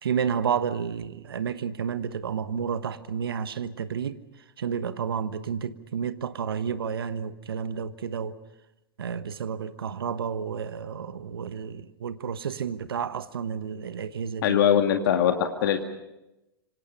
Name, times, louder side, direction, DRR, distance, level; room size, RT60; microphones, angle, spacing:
voice 1, 0.0-4.2 4.6-8.3 9.0-14.6, right 7 dB, 80° right, 1.3 m, -31 dB
voice 2, 14.4-15.8, left 9 dB, 65° left, 2.1 m, -22 dB
26.5 x 26.0 x 5.6 m
hypercardioid pair, 100°, 12 cm